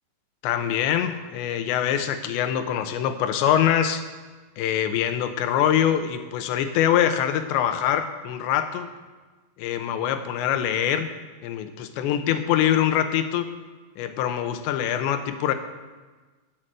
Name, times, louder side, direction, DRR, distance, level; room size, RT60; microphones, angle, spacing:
voice 1, 0.4-4.0 4.6-8.9 9.6-11.1 11.4-13.5 14.0-15.5, left 10 dB, 85° left, 8 dB, 3.2 m, -24 dB
11.5 x 8.2 x 7.5 m, 1.3 s
omnidirectional pair, 5.1 m